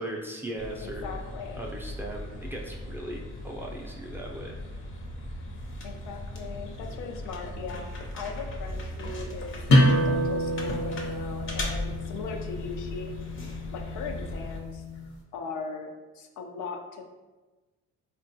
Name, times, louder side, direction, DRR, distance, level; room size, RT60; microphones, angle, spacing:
voice 1, 0.0-1.0 1.6-4.6, right 1 dB, 10° right, -1 dB, 0.4 m, -38 dB
sound 1, 0.6-14.6, left 1 dB, 45° left, 0.6 m, -38 dB
voice 2, 0.8-1.7 5.8-13.1 13.7-14.8 15.3-17.0, left 4 dB, 90° left, 3 dB, 0.5 m, -39 dB
sound 2, 9.7-15.1, equal, 70° left, 0.9 m, -27 dB
3.6 x 2.2 x 2.6 m, 1.2 s
cardioid pair, 95°, 30 cm